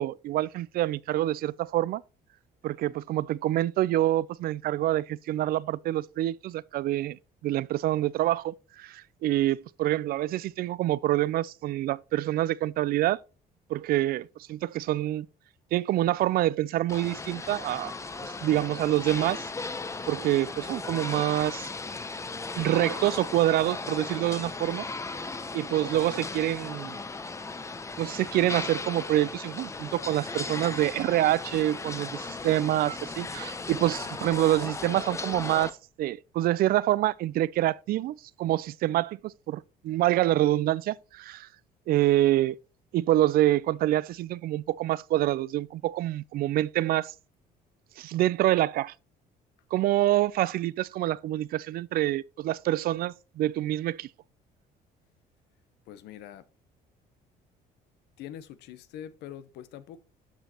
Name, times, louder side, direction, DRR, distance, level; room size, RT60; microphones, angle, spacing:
voice 1, 0.0-2.0 2.6-7.2 7.4-13.2 13.7-15.3 15.7-17.9 18.2-19.4 20.1-21.7 22.6-24.9 25.5-27.0 28.0-41.5 41.9-42.6 42.9-47.1 48.0-48.9 49.7-54.1, right 14 dB, 60° right, 0.4 m, -26 dB
sound 1, 16.9-35.7, left 3 dB, 15° left, 0.7 m, -36 dB
voice 2, 34.0-34.3 55.9-56.4 58.2-60.0, left 10 dB, 80° left, 0.9 m, -44 dB
12.5 x 5.1 x 2.9 m
cardioid pair, 110°, 17 cm